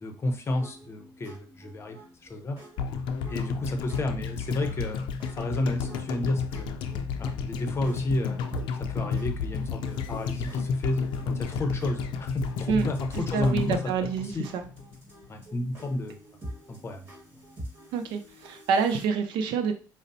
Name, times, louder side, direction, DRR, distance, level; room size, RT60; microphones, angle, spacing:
voice 1, 0.0-2.6 3.3-6.7 7.2-8.4 8.8-13.8 14.2-14.5 15.3-16.2 16.7-17.1, left 1 dB, 35° left, 6 dB, 0.7 m, -31 dB
sound 1, 0.6-19.0, right 1 dB, 25° right, 1.8 m, -48 dB
sound 2, 2.8-15.0 15.2-15.3, left 5 dB, 80° left, 0.4 m, -32 dB
voice 2, 13.3-14.6 17.9-19.7, right 6 dB, 80° right, 7 dB, 0.5 m, -27 dB
5.0 x 2.0 x 2.6 m, 0.37 s
cardioid pair, 90°, 8 cm